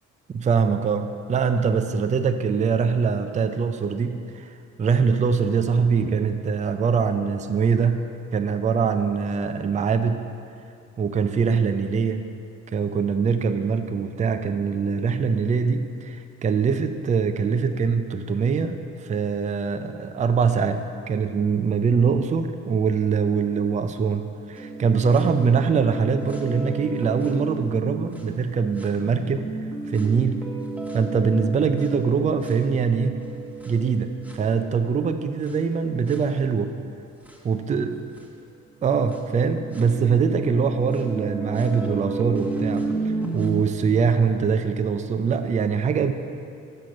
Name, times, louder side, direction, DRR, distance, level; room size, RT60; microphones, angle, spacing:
voice 1, 0.3-8.0 8.3-10.3 11.0-12.2 12.7-29.4 29.9-30.4 30.9-33.2 33.7-36.7 37.4-37.9 38.8-46.1, right 5 dB, 25° right, 8 dB, 0.4 m, -23 dB
sound 1, 24.6-28.4 28.8-34.9 35.4-35.5 36.1-36.2 37.2-37.3 38.2-38.3 39.1-43.6, right 3 dB, 5° right, 1.1 m, -32 dB
6.5 x 5.8 x 5.3 m, 2.5 s
cardioid pair, 90°, 30 cm